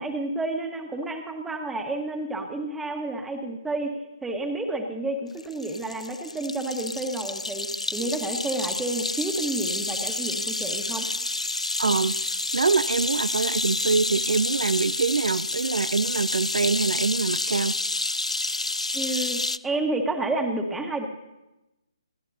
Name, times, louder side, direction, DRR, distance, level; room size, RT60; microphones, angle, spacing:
voice 1, 0.0-11.1 18.9-21.1, right 2 dB, 5° right, 4 dB, 1.5 m, -30 dB
sound 1, 5.4-19.6, left 2 dB, 90° left, 0.4 m, -29 dB
voice 2, 11.8-12.2 12.5-17.7, right 4 dB, 70° right, 16 dB, 0.4 m, -24 dB
28.5 x 13.0 x 2.8 m, 0.99 s
figure-of-eight pair, 145°, 3 cm